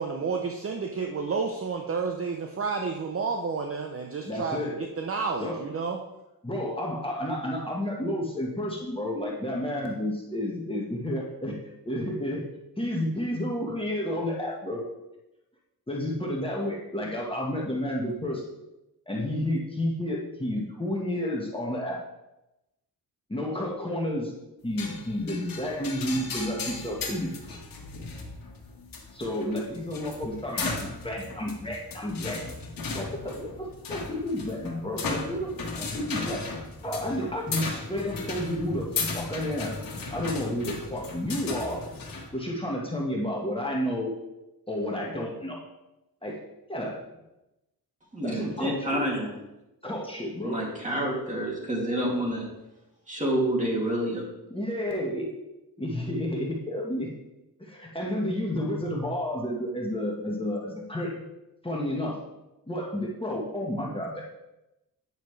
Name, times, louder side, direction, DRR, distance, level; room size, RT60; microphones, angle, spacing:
voice 1, 0.0-6.0, right 5 dB, 35° right, 3 dB, 0.7 m, -30 dB
voice 2, 4.2-4.8 5.4-5.6 6.4-11.6 11.8-12.4 12.8-14.8 15.9-18.4 19.1-22.0 23.3-24.3 24.6-27.3 29.1-35.5 35.8-36.4 36.8-39.7 40.1-41.8 42.3-44.1 44.7-45.6 46.2-46.4 46.7-47.0 48.2-49.0 49.8-50.6 54.5-55.3 55.8-57.1 57.6-61.2 61.6-62.2 62.7-64.2, left 1 dB, 15° left, -3 dB, 1.4 m, -31 dB
sound 1, 24.8-42.3, left 4 dB, 60° left, 1.5 m, -36 dB
voice 3, 48.1-49.3 50.4-52.5 53.1-54.2, right 1 dB, 20° right, -4 dB, 2.6 m, -28 dB
9.2 x 6.3 x 3.2 m, 0.94 s
cardioid pair, 100°, 38 cm